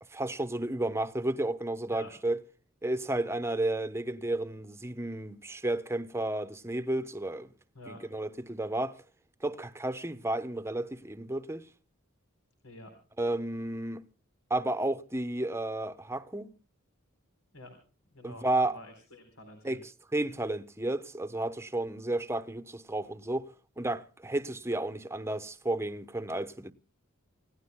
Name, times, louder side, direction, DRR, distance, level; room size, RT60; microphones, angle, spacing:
voice 1, 0.1-2.4 2.8-7.5 7.9-9.0 9.4-11.6 13.2-14.0 14.5-16.5 18.2-18.7 19.6-19.8 20.1-23.5 23.8-26.7, right 1 dB, 10° right, 0.9 m, -32 dB
voice 2, 12.6-12.9 17.5-17.8 18.1-19.8, left 1 dB, 90° left, 4.0 m, -48 dB
28.0 x 17.0 x 2.2 m
head